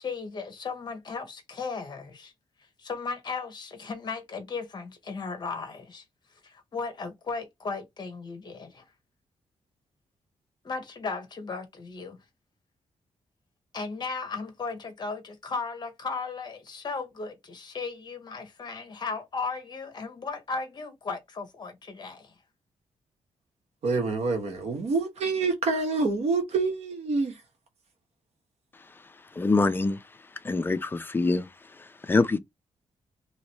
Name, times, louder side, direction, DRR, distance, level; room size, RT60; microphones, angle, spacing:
voice 1, 0.0-2.3 2.8-6.0 6.4-8.8 10.6-12.2 13.7-22.3, left 4 dB, 40° left, 0.9 m, -36 dB
voice 2, 23.8-27.4, right 4 dB, 65° right, 1.3 m, -27 dB
voice 3, 29.3-30.0 30.4-32.4, left 3 dB, 20° left, 0.4 m, -25 dB
3.0 x 2.9 x 2.9 m
wide cardioid pair, 160°, 12 cm